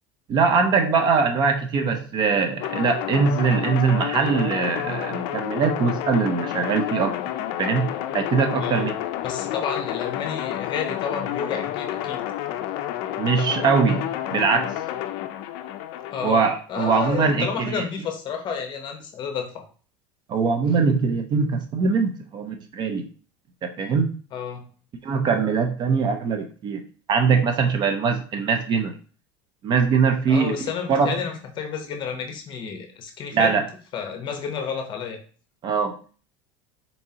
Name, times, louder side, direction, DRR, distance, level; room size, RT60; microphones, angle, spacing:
voice 1, 0.3-7.2 7.6-7.9 8.1-8.9 13.2-14.7 16.2-17.8 20.3-23.0 23.6-24.2 25.0-26.8 27.1-28.9 29.6-30.6 30.9-31.2 33.3-33.6 35.6-36.0, right 5 dB, 35° right, 6 dB, 0.5 m, -22 dB
sound 1, 2.6-16.3, left 12 dB, 60° left, 0.4 m, -30 dB
voice 2, 8.5-8.9 9.2-12.2 16.1-19.6 24.3-24.7 30.3-33.6 33.9-35.2, left 6 dB, 35° left, 4 dB, 0.8 m, -31 dB
4.1 x 3.5 x 2.8 m, 0.40 s
supercardioid pair, 140°, 13 cm